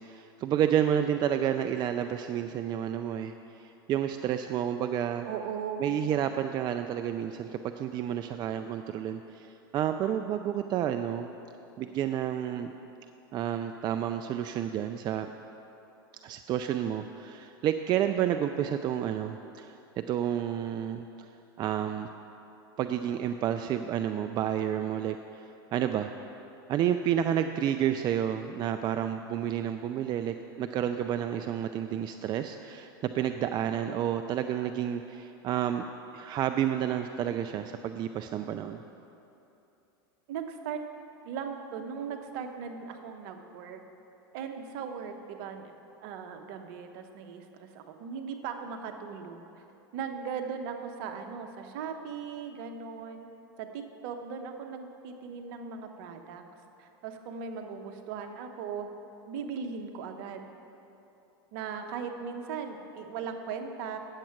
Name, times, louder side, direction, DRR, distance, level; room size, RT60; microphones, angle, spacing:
voice 1, 0.0-3.3 3.6-5.3 5.8-11.3 11.8-12.7 13.3-15.3 16.2-21.1 21.6-22.1 22.8-26.1 26.7-35.8 36.1-38.8, right 10 dB, 35° right, 8 dB, 0.4 m, -30 dB
voice 2, 5.2-6.0 40.3-40.8 41.2-43.8 44.3-45.7 46.0-49.4 49.9-53.3 53.6-56.4 56.8-58.9 59.3-60.4 61.5-64.0, right 6 dB, 60° right, 5 dB, 0.9 m, -38 dB
8.9 x 7.4 x 5.8 m, 2.9 s
hypercardioid pair, 100°, 13 cm